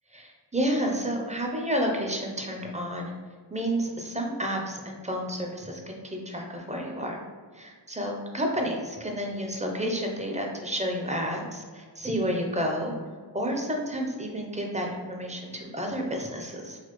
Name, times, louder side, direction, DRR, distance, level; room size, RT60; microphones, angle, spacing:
voice 1, 0.1-3.1 3.5-7.2 7.5-12.9 13.3-16.8, equal, 15° right, 1 dB, 0.5 m, -30 dB
4.1 x 2.3 x 3.0 m, 1.6 s
wide cardioid pair, 60°, 42 cm